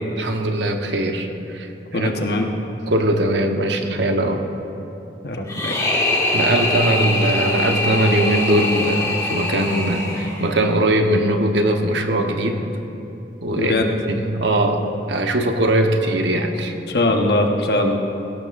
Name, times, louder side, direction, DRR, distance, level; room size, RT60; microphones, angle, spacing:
voice 1, 0.2-1.3 1.5-1.7 1.9-2.1 2.9-4.4 6.3-12.6 13.4-13.7 14.0-16.7, right 1 dB, 90° right, 4 dB, 1.1 m, -20 dB
voice 2, 1.9-2.5 5.2-5.8 13.6-13.9 16.9-18.0, left 2 dB, 65° left, 2 dB, 1.2 m, -21 dB
sound 1, 5.5-10.6, left 2 dB, 20° left, 2.4 m, -23 dB
17.5 x 17.0 x 2.6 m, 2.9 s
head